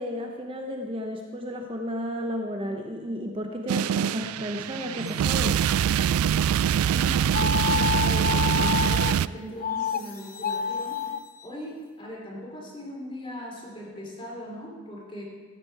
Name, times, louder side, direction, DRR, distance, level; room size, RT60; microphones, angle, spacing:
voice 1, 0.0-5.6, equal, 25° right, 3 dB, 0.7 m, -33 dB
sound 1, 3.7-9.3, right 9 dB, 85° right, 0.3 m, -24 dB
sound 2, 4.5-11.8, left 6 dB, 90° left, 2.3 m, -51 dB
voice 2, 6.9-11.0 11.4-15.2, left 1 dB, 25° left, -1 dB, 2.9 m, -39 dB
sound 3, 7.3-9.1 9.6-10.0 10.3-11.2, left 7 dB, 40° left, 0.3 m, -28 dB
15.5 x 12.5 x 4.6 m, 1.5 s
head